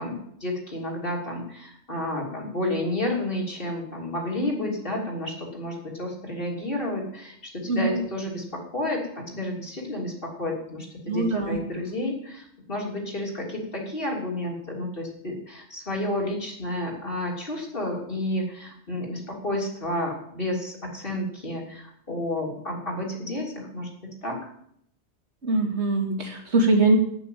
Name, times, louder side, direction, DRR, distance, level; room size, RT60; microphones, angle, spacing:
voice 1, 0.0-24.4, left 1 dB, 55° left, -1 dB, 3.3 m, -31 dB
voice 2, 7.7-8.0 11.1-11.6 25.4-27.0, right 2 dB, 90° right, 1 dB, 3.0 m, -22 dB
9.4 x 9.0 x 9.2 m, 0.68 s
omnidirectional pair, 1.1 m